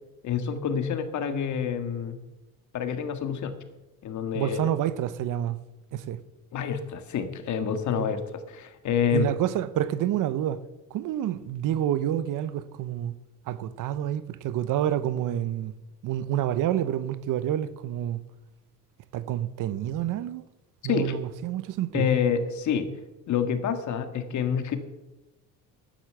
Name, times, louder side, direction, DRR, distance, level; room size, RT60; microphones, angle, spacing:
voice 1, 0.2-2.2 2.7-3.5 4.0-4.7 6.5-9.3 20.8-21.2 21.9-22.9 23.3-24.8, left 7 dB, 55° left, 1.8 m, -27 dB
voice 2, 4.3-5.6 5.9-6.2 8.0-8.1 9.1-10.6 10.9-13.2 13.5-15.7 16.0-18.2 19.1-20.4 20.8-22.1, right 11 dB, 60° right, 0.8 m, -28 dB
11.5 x 10.5 x 7.6 m
cardioid pair, 130°, 35 cm